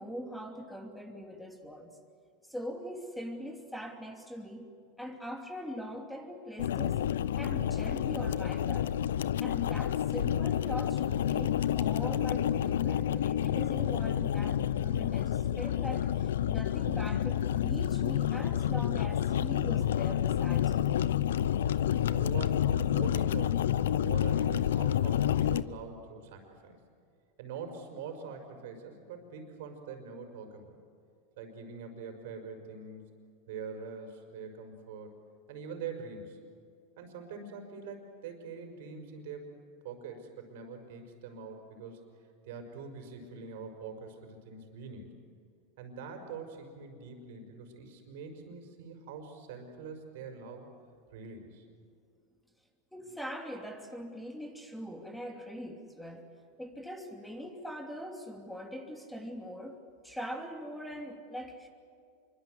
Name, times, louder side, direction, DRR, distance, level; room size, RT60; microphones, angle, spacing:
voice 1, 0.0-1.9 2.4-4.7 5.0-7.0 7.4-8.9 9.4-21.0 52.9-56.3 56.6-59.8 60.0-61.7, equal, 5° left, 3 dB, 2.9 m, -42 dB
sound 1, 6.6-25.6, left 10 dB, 85° left, 0.7 m, -29 dB
voice 2, 21.7-26.8 27.4-30.8 31.4-33.2 33.5-35.2 35.5-36.4 37.0-39.5 39.8-42.0 42.5-45.2 45.8-50.7 51.1-51.7, right 5 dB, 70° right, 5 dB, 5.6 m, -44 dB
26.5 x 24.0 x 8.0 m, 2.4 s
hypercardioid pair, 110°, 0 cm